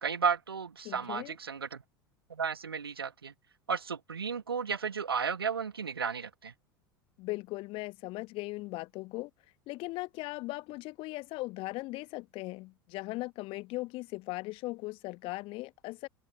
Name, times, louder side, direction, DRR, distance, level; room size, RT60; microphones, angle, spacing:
voice 1, 0.0-1.8 2.3-3.3 3.7-6.5, right 6 dB, 80° right, 1.4 m, -33 dB
voice 2, 0.8-1.4 7.2-9.3 9.7-16.1, left 21 dB, 45° left, 1.3 m, -38 dB
open air
figure-of-eight pair, 75°, 12 cm